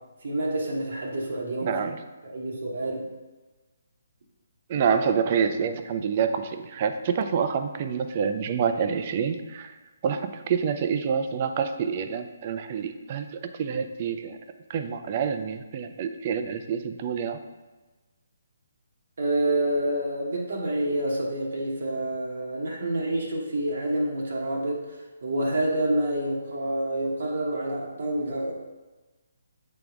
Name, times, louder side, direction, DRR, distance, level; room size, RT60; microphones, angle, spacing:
voice 1, 0.2-1.8 2.2-3.1 19.2-25.0 25.2-28.5, right 1 dB, 60° right, -2 dB, 1.1 m, -28 dB
voice 2, 1.6-2.0 4.7-9.7 10.0-14.4 14.7-17.4, right 6 dB, 40° right, 8 dB, 0.4 m, -27 dB
7.7 x 3.5 x 3.5 m, 1.2 s
figure-of-eight pair, 140°, 0 cm